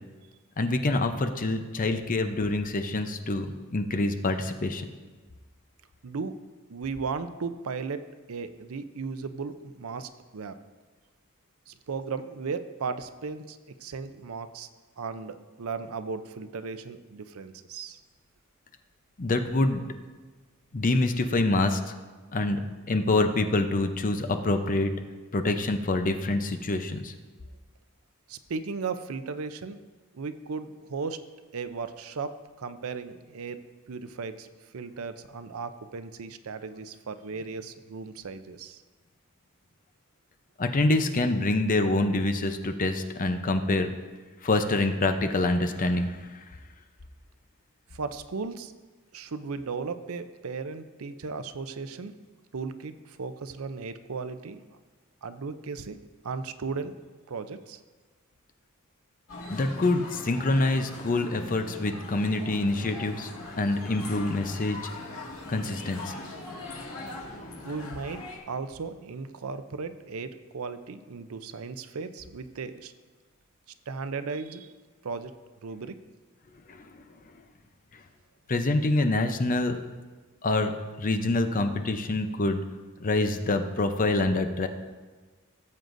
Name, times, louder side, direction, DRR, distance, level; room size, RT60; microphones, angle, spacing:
voice 1, 0.6-4.9 19.2-19.8 20.7-21.8 22.3-24.9 25.3-27.1 40.6-43.9 44.4-46.4 59.5-63.3 63.6-64.9 65.5-66.1 76.7-76.9 78.5-79.8 80.4-80.7 81.0-82.6 83.0-84.7, left 2 dB, 40° left, 7 dB, 0.7 m, -26 dB
voice 2, 6.0-6.4 6.7-10.6 11.7-14.7 15.0-18.0 28.3-29.8 30.1-31.2 31.5-33.6 33.9-34.5 34.7-38.8 47.9-48.7 49.1-52.1 52.5-54.6 55.2-57.0 57.3-57.8 67.6-72.9 73.9-74.7 75.0-75.3 75.6-76.0, right 4 dB, 75° right, 11 dB, 0.6 m, -36 dB
sound 1, 59.3-68.4, left 2 dB, 75° left, 2.1 m, -41 dB
17.5 x 7.6 x 2.6 m, 1.3 s
head